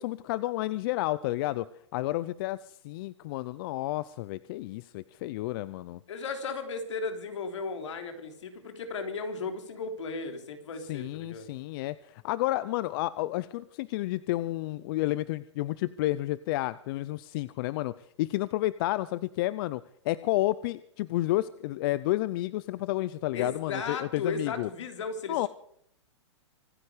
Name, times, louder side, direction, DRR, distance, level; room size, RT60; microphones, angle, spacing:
voice 1, 0.0-1.7 1.9-6.0 10.9-24.7 25.3-25.5, left 17 dB, 50° left, 18 dB, 0.6 m, -31 dB
voice 2, 6.1-11.5 23.3-25.5, left 4 dB, 75° left, 6 dB, 3.4 m, -35 dB
25.0 x 9.8 x 5.0 m, 0.67 s
hypercardioid pair, 130°, 15 cm